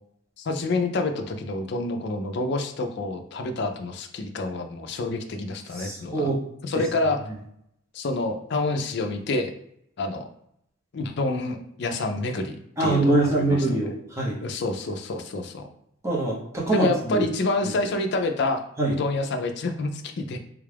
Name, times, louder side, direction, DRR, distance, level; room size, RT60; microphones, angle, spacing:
voice 1, 0.4-6.3 6.6-7.2 7.9-9.5 10.0-10.2 10.9-13.6 14.4-15.6 16.7-18.6 18.9-20.4, left 2 dB, 55° left, 6 dB, 0.4 m, -28 dB
voice 2, 5.7-6.4 12.8-14.4 16.0-17.3 17.6-17.7 18.8-19.0, right 2 dB, 15° right, -4 dB, 0.8 m, -24 dB
3.6 x 2.3 x 3.3 m, 0.72 s
head